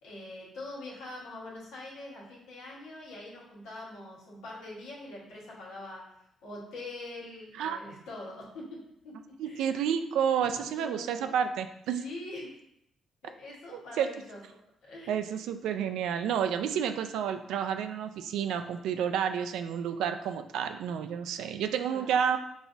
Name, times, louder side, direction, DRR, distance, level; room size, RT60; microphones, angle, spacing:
voice 1, 0.0-6.0 6.4-8.8 9.0-9.1 9.4-9.8 10.4-11.4 12.0-12.5 13.2-14.4 14.8-15.2 15.5-15.6 16.5-16.9 21.9-22.2, left 2 dB, 90° left, -4 dB, 1.4 m, -44 dB
voice 2, 9.4-12.0 13.7-14.1 15.1-22.4, right 8 dB, 85° right, 8 dB, 0.3 m, -30 dB
6.0 x 2.3 x 2.6 m, 0.77 s
cardioid pair, 90°, 0 cm